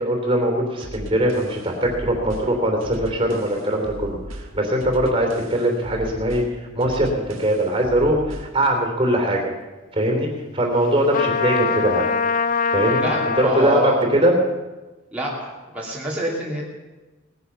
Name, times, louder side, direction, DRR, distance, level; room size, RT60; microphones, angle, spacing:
voice 1, 0.0-4.2 4.5-6.4 6.7-7.1 7.4-9.4 9.9-10.3 10.5-12.0 12.7-13.1 13.4-14.3, right 1 dB, 25° right, 2 dB, 3.1 m, -21 dB
sound 1, 0.8-8.6, right 1 dB, 85° right, 1.7 m, -38 dB
Trumpet, 11.1-13.6, left 5 dB, 40° left, 0.5 m, -23 dB
voice 2, 13.0-14.0 15.1-16.6, right 1 dB, 5° right, -6 dB, 2.7 m, -26 dB
19.0 x 10.5 x 7.0 m, 1.2 s
head